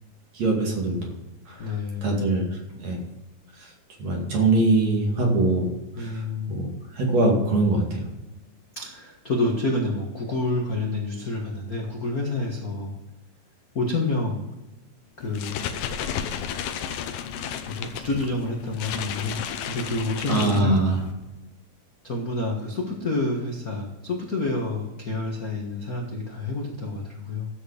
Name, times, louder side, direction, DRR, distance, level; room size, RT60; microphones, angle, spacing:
voice 1, 0.3-1.0 1.5-1.6 2.0-2.5 2.8-3.0 4.0-5.7 6.0-6.2 6.5-6.7 7.0-8.0 20.3-21.0, right 2 dB, 55° right, -1 dB, 3.3 m, -22 dB
voice 2, 1.6-2.1 5.9-6.6 8.7-12.9 13.7-14.4 15.2-15.6 17.6-20.8 22.0-27.5, left 2 dB, 45° left, -1 dB, 1.2 m, -28 dB
sound 1, 15.2-21.1, left 8 dB, 80° left, 2.5 m, -33 dB
12.5 x 8.2 x 5.0 m, 1.0 s
omnidirectional pair, 3.9 m